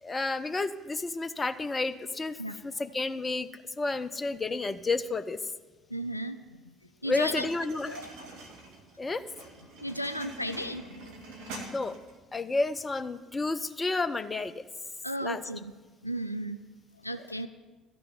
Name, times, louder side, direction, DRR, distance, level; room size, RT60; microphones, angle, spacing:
voice 1, 0.0-3.5 3.8-5.4 7.0-8.0 9.0-9.2 11.7-12.0 12.3-14.5 15.2-15.4, left 3 dB, 25° left, 13 dB, 0.6 m, -31 dB
voice 2, 5.9-6.4 6.7-6.8 7.0-7.5 7.9-8.3 9.8-11.1 15.0-15.7 16.0-16.6 17.0-17.5, equal, 90° left, 10 dB, 0.3 m, -35 dB
sound 1, 7.1-12.2, right 2 dB, 60° right, 1.5 m, -45 dB
12.5 x 6.0 x 9.5 m, 1.3 s
figure-of-eight pair, 55°, 0 cm